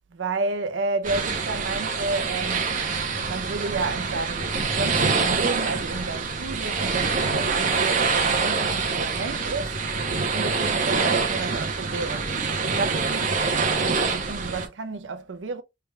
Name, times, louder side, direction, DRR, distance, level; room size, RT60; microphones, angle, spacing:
voice 1, 0.1-2.8 3.3-9.8 10.3-15.6, right 3 dB, 80° right, 0.6 m, -31 dB
sound 1, 1.0-14.7, right 4 dB, 45° right, 0.9 m, -25 dB
4.8 x 3.4 x 2.3 m
head